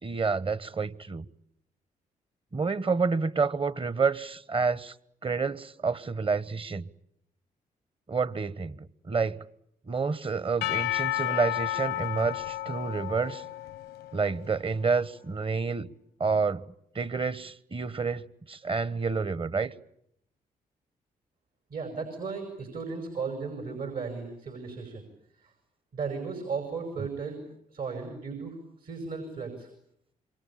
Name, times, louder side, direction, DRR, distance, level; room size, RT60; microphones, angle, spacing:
voice 1, 0.0-1.2 2.5-4.9 5.2-6.9 8.1-9.4 9.9-13.4 14.1-15.9 16.2-16.6 16.9-19.7, right 4 dB, 35° right, 1.2 m, -29 dB
Percussion / Church bell, 10.6-14.6, left 15 dB, 90° left, 1.0 m, -32 dB
voice 2, 21.7-25.0 25.4-25.5 25.9-27.4 27.7-29.7, right 5 dB, 65° right, 5.5 m, -35 dB
27.0 x 24.0 x 8.6 m
supercardioid pair, 50°, 16 cm